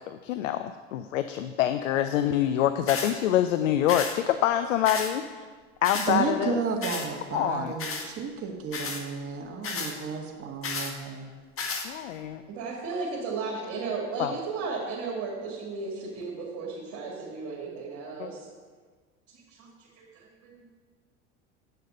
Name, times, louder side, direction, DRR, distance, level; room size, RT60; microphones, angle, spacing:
voice 1, 0.1-5.2 5.8-6.6 7.3-7.7 11.8-12.4 14.2-14.4 18.2-18.3, left 11 dB, 90° left, 10 dB, 0.5 m, -26 dB
sound 1, 2.9-3.1 3.9-4.1 4.8-5.1 5.8-6.1 6.8-7.1 7.8-8.1 8.7-9.0 9.6-9.9 10.6-10.9 11.6-11.9, left 4 dB, 35° left, 1.5 m, -32 dB
voice 2, 6.1-11.3, right 5 dB, 35° right, 1 dB, 1.6 m, -32 dB
voice 3, 12.5-18.4 19.6-19.7 20.0-20.5, right 4 dB, 55° right, -4 dB, 2.4 m, -34 dB
8.9 x 6.7 x 6.5 m, 1.5 s
hypercardioid pair, 85°, 37 cm